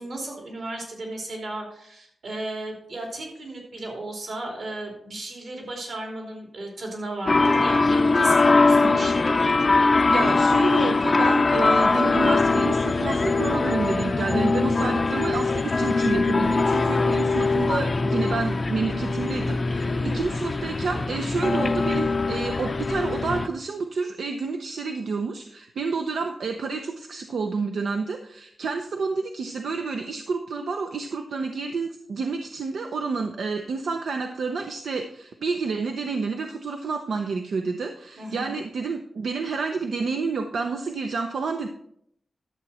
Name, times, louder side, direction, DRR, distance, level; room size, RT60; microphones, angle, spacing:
voice 1, 0.0-9.5 20.0-20.3 38.2-38.5, right 2 dB, 65° right, 0 dB, 3.1 m, -34 dB
sound 1, 7.3-23.5, left 3 dB, 30° left, 0.5 m, -22 dB
voice 2, 10.1-41.7, right 4 dB, 90° right, 5 dB, 0.7 m, -29 dB
11.0 x 7.5 x 4.2 m, 0.71 s
wide cardioid pair, 175°, 0 cm